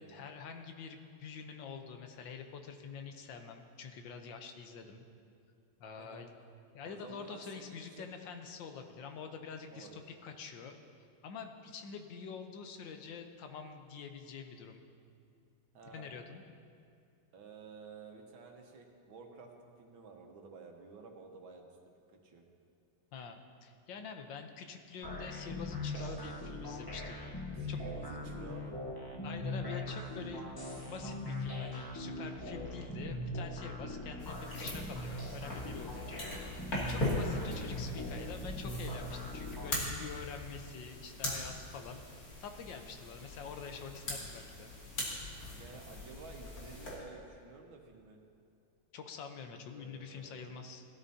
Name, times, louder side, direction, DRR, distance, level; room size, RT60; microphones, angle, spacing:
voice 1, 0.0-5.0 5.8-6.3 6.7-10.8 11.2-14.8 15.9-16.4 23.1-27.2 27.7-27.8 29.2-30.5 30.9-42.0 42.4-44.7 48.9-50.8, left 6 dB, 70° left, 6 dB, 1.6 m, -46 dB
voice 2, 6.8-8.1 9.7-10.0 15.7-16.2 17.3-21.7 22.1-22.4 27.5-28.8 35.9-36.2 37.4-37.6 45.5-48.2 49.7-50.6, right 4 dB, 90° right, 2 dB, 2.0 m, -52 dB
sound 1, 25.0-39.8, left 1 dB, 20° left, 0.7 m, -41 dB
sound 2, 34.2-46.9, left 1 dB, 50° left, 2.9 m, -40 dB
17.5 x 12.5 x 2.8 m, 2.4 s
omnidirectional pair, 2.1 m